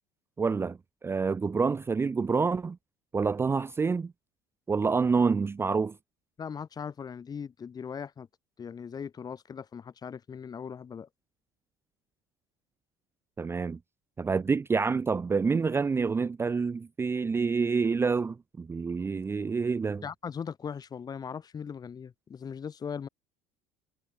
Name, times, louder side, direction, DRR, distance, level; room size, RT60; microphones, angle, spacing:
voice 1, 0.4-2.8 3.1-4.1 4.7-5.9 13.4-13.8 14.2-20.0, right 5 dB, 20° right, 0.6 m, -27 dB
voice 2, 6.4-8.3 8.6-11.1 20.0-23.1, left 7 dB, 35° left, 2.2 m, -39 dB
hypercardioid pair, 65°, 12 cm